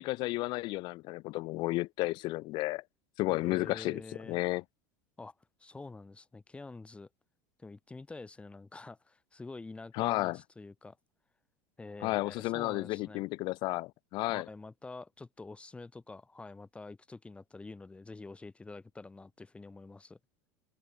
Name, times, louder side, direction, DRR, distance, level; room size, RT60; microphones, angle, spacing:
voice 1, 0.0-2.8 3.2-4.0 4.3-4.6 9.9-10.4 12.0-14.5, left 20 dB, 55° left, 0.9 m, -32 dB
voice 2, 3.4-4.4 5.2-5.3 5.6-7.1 7.6-11.0 11.8-13.2 14.3-20.2, left 3 dB, 10° left, 4.9 m, -47 dB
supercardioid pair, 115°, 9 cm